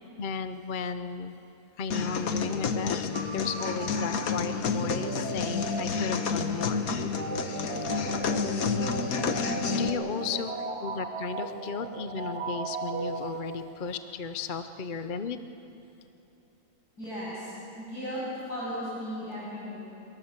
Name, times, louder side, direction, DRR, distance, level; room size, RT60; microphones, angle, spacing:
voice 1, 0.2-1.3 1.8-6.9 9.1-15.4, left 5 dB, 45° left, 10 dB, 0.7 m, -35 dB
sound 1, 1.9-9.9, left 5 dB, 70° left, 1.6 m, -30 dB
sound 2, 3.1-13.9, right 3 dB, 90° right, 2.5 m, -37 dB
voice 2, 17.0-18.2 18.5-19.8, equal, 90° left, -6 dB, 8.3 m, -36 dB
25.0 x 24.0 x 7.4 m, 2.9 s
omnidirectional pair, 1.6 m